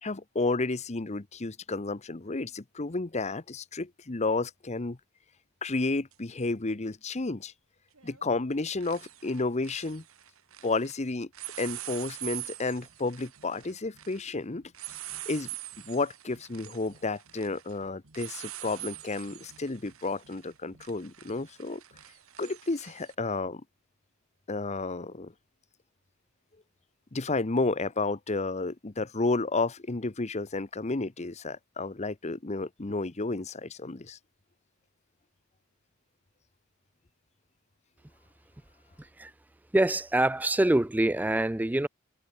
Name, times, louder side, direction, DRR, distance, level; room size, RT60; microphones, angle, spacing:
voice 1, 0.0-5.0 5.6-7.5 8.0-10.0 10.6-11.3 11.6-14.6 15.3-15.5 15.8-21.8 22.4-23.6 24.5-25.3 27.1-34.2, left 3 dB, 30° left, 0.8 m, -31 dB
sound 1, 6.1-6.2 7.9-8.2 8.5-10.9 11.3-23.1, right 14 dB, 70° right, 1.9 m, -44 dB
voice 2, 39.0-39.3 39.7-41.9, right 1 dB, 5° right, 0.4 m, -25 dB
head